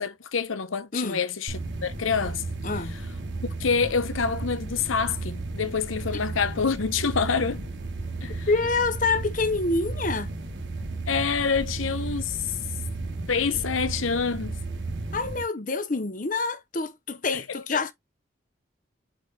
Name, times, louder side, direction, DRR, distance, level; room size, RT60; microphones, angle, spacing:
voice 1, 0.0-2.4 3.6-7.6 8.2-8.5 11.1-12.4 13.3-14.6 17.3-17.4 17.7-17.8, left 5 dB, 90° left, 0.8 m, -27 dB
sound 1, 1.5-15.4, right 2 dB, 65° right, 1.8 m, -34 dB
voice 2, 2.6-2.9 8.5-10.3 15.1-17.9, left 3 dB, 40° left, 0.8 m, -26 dB
4.7 x 4.7 x 4.2 m
head